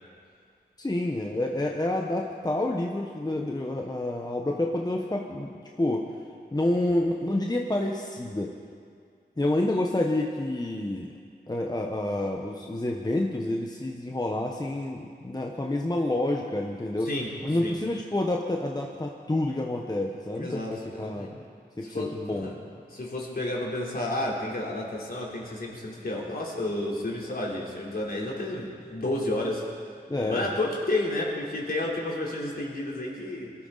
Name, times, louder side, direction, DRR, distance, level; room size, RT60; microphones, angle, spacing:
voice 1, 0.8-6.1 6.5-8.5 9.4-11.1 11.5-17.1 17.4-21.3 21.8-22.5 30.1-30.5, left 1 dB, 20° left, 1 dB, 1.1 m, -28 dB
voice 2, 17.0-17.3 17.6-17.8 20.3-21.3 21.8-22.6 22.9-29.7 30.2-33.5, left 1 dB, 55° left, -4 dB, 3.6 m, -31 dB
22.0 x 13.0 x 4.1 m, 2.2 s
cardioid pair, 60°, 19 cm